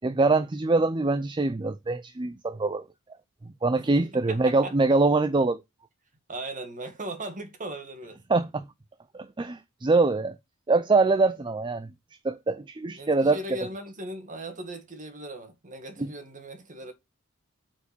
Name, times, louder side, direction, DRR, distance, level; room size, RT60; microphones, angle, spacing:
voice 1, 0.0-2.9 3.6-5.6 8.3-8.7 9.1-10.4 10.7-11.9 12.2-13.4, right 3 dB, 20° right, 0.5 m, -24 dB
voice 2, 3.9-4.7 6.3-8.2 13.0-16.9, right 1 dB, 35° right, 2.0 m, -38 dB
8.5 x 4.6 x 7.0 m
head